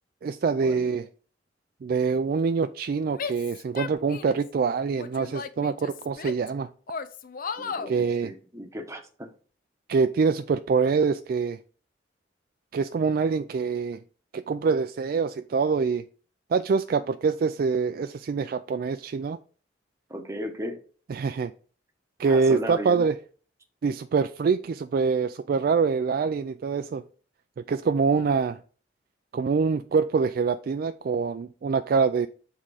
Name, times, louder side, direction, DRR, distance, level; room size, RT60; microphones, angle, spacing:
voice 1, 0.2-1.1 1.8-6.7 7.9-8.3 9.9-11.6 12.7-14.0 14.3-16.0 16.5-19.4 21.1-21.5 22.2-23.2 23.8-27.0 27.6-28.6 29.3-32.3, right 5 dB, 50° right, 0.3 m, -25 dB
Female speech woman speaking / Yell, 3.2-4.5 5.0-6.5 6.9-7.9, left 5 dB, 50° left, 0.5 m, -35 dB
voice 2, 7.6-9.3 20.1-20.8 22.3-23.0, equal, 15° right, 0.9 m, -36 dB
7.5 x 3.6 x 4.8 m
head